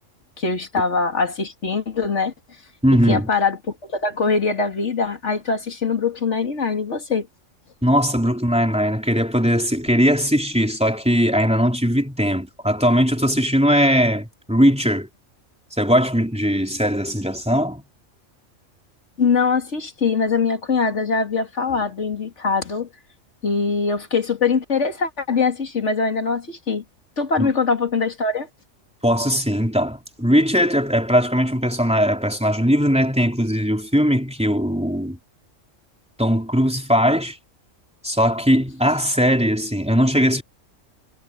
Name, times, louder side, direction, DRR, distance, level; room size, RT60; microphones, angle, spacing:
voice 1, 0.4-2.3 2.9-7.3 19.2-22.9 23.4-26.8 27.2-28.5, left 4 dB, 65° left, 2.9 m, -22 dB
voice 2, 2.8-3.3 7.8-15.1 15.8-17.8 27.4-27.5 29.0-35.2 36.2-37.4 38.0-40.4, equal, 5° right, 3.6 m, -19 dB
omnidirectional pair, 1.3 m